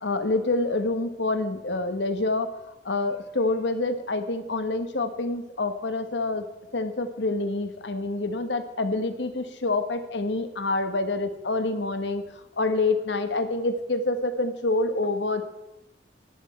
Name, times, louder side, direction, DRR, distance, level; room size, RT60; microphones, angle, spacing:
voice 1, 0.0-2.5 2.8-6.5 6.7-12.2 12.6-15.4, left 2 dB, 80° left, 9 dB, 1.3 m, -27 dB
11.0 x 11.0 x 4.4 m, 0.96 s
head